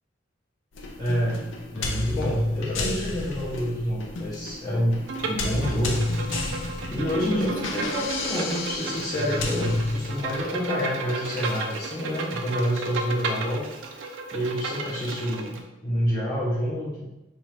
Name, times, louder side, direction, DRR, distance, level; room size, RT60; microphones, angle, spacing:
sound 1, 0.7-10.6, left 2 dB, 75° left, 0.5 m, -30 dB
voice 1, 1.0-6.0 6.9-13.7 14.3-15.6 15.8-17.1, equal, 20° left, -7 dB, 0.6 m, -28 dB
Bowed string instrument, 5.1-15.6, right 3 dB, 85° right, 0.5 m, -33 dB
3.7 x 2.7 x 3.2 m, 0.95 s
head